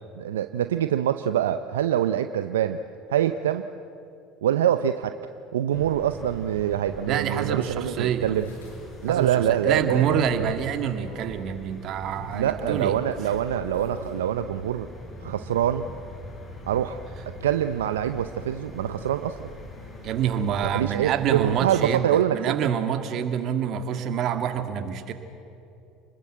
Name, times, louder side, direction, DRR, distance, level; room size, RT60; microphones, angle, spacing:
voice 1, 0.2-2.8 3.1-3.6 4.4-5.1 5.5-8.5 9.0-10.5 12.3-14.9 15.2-15.9 16.7-17.0 17.4-19.5 20.6-22.5, right 10 dB, 80° right, 10 dB, 0.7 m, -25 dB
sound 1, 5.7-21.8, left 2 dB, 30° left, 7.0 m, -42 dB
voice 2, 7.1-8.3 9.1-12.9 20.0-25.1, right 8 dB, 55° right, 7 dB, 2.4 m, -27 dB
sound 2, 8.3-9.4 9.7-9.8 10.4-10.8 11.0-11.4 12.1-14.2, equal, 90° left, 6.0 m, -45 dB
29.5 x 20.5 x 8.0 m, 2.7 s
hypercardioid pair, 70°, 0 cm